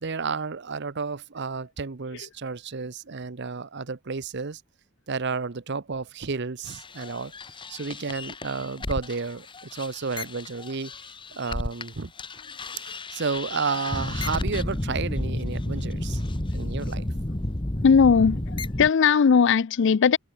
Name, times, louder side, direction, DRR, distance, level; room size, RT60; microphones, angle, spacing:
voice 1, 0.0-4.6 5.1-7.3 7.7-10.9 11.3-12.1 12.8-16.2 16.5-17.1, right 4 dB, 50° right, 0.8 m, -31 dB
sound 1, 6.7-11.9 12.2-18.9, left 1 dB, 20° left, 1.2 m, -32 dB
voice 2, 17.8-20.2, left 6 dB, 55° left, 0.4 m, -19 dB
head